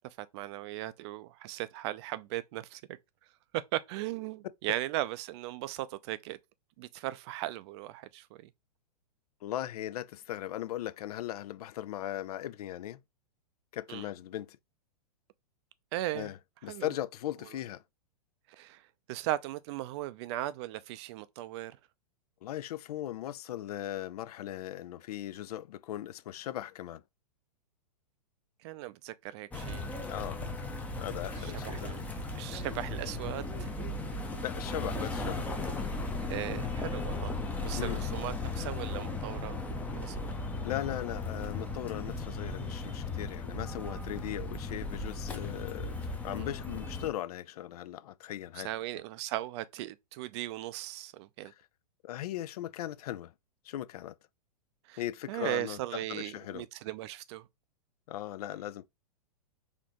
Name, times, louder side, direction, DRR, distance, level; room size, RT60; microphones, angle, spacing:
voice 1, 0.2-2.8 3.5-6.4 6.8-8.5 13.9-14.1 15.9-16.3 16.7-16.9 18.6-18.8 19.1-21.8 28.6-29.9 31.4-32.0 32.4-33.7 36.3-37.3 37.6-39.5 40.0-40.3 46.3-46.5 48.6-51.5 54.9-55.0 55.3-57.5, right 15 dB, 45° right, 0.4 m, -37 dB
voice 2, 9.4-13.0 13.7-14.6 16.1-16.4 16.6-17.8 22.4-27.0 30.1-30.4 31.0-32.0 34.4-35.5 37.7-38.0 40.6-46.0 46.2-48.7 51.4-51.5 52.0-53.3 53.6-54.2 55.0-56.7 58.1-58.9, left 13 dB, 70° left, 0.4 m, -38 dB
sound 1, 29.5-47.1, left 3 dB, 10° left, 0.6 m, -36 dB
4.3 x 2.6 x 2.9 m
hypercardioid pair, 130°, 20 cm